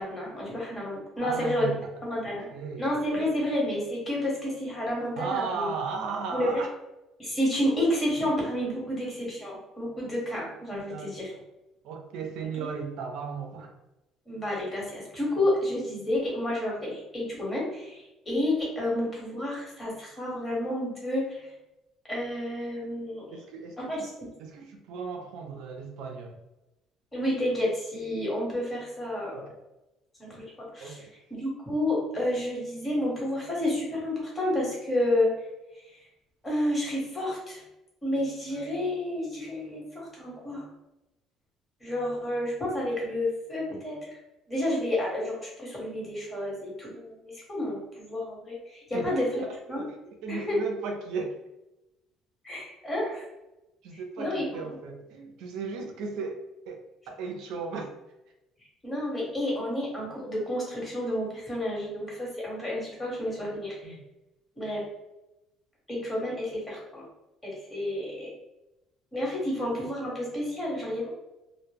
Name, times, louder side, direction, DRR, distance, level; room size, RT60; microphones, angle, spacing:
voice 1, 0.0-1.8 2.0-2.5 2.8-5.7 6.3-6.6 7.2-11.3 12.6-12.7 14.3-21.5 22.1-23.4 23.9-24.3 27.1-29.5 30.2-31.0 31.3-35.3 35.7-36.0 36.4-37.6 38.0-40.7 41.8-44.2 44.5-49.2 49.7-49.8 50.3-50.6 52.4-53.2 53.9-54.4 58.8-63.9 64.6-64.8 65.9-67.0 67.4-68.3 69.1-71.1, left 1 dB, 20° left, -4 dB, 1.2 m, -30 dB
voice 2, 1.2-1.9 2.2-2.9 5.2-6.7 9.0-9.1 10.9-11.5 11.8-13.7 23.3-24.1 24.4-26.4 29.3-29.6 30.8-31.1 48.9-50.0 50.2-51.4 53.8-57.9 63.4-63.5 63.8-64.0, right 5 dB, 80° right, 3 dB, 0.4 m, -36 dB
2.0 x 2.0 x 3.3 m, 0.95 s
cardioid pair, 110°, 0 cm